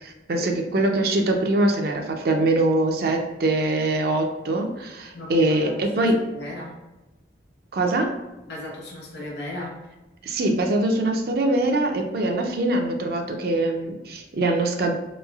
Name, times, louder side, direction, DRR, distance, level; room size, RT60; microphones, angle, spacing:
voice 1, 0.0-6.2 7.7-8.1 10.2-14.9, right 2 dB, 55° right, 3 dB, 0.4 m, -23 dB
voice 2, 5.1-6.8 8.5-9.8, left 1 dB, 65° left, -3 dB, 1.0 m, -36 dB
3.1 x 2.6 x 2.3 m, 1.0 s
head